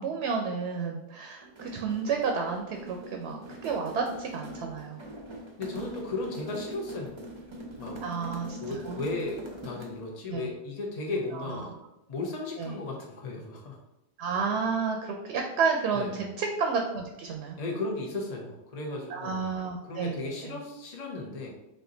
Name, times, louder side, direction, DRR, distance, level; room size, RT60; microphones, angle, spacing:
voice 1, 0.0-5.0 8.0-9.0 10.3-10.5 11.3-11.6 12.6-12.8 14.2-17.6 19.1-20.1 20.4-20.6, right 5 dB, 80° right, 2 dB, 0.9 m, -31 dB
sound 1, 1.4-10.1, right 1 dB, 35° right, 0.6 m, -43 dB
voice 2, 5.6-7.1 7.8-8.0 8.6-11.8 12.1-13.8 15.9-16.2 17.6-19.5 19.8-21.5, left 2 dB, 40° left, -1 dB, 0.7 m, -35 dB
4.3 x 2.5 x 3.8 m, 0.91 s
omnidirectional pair, 1.1 m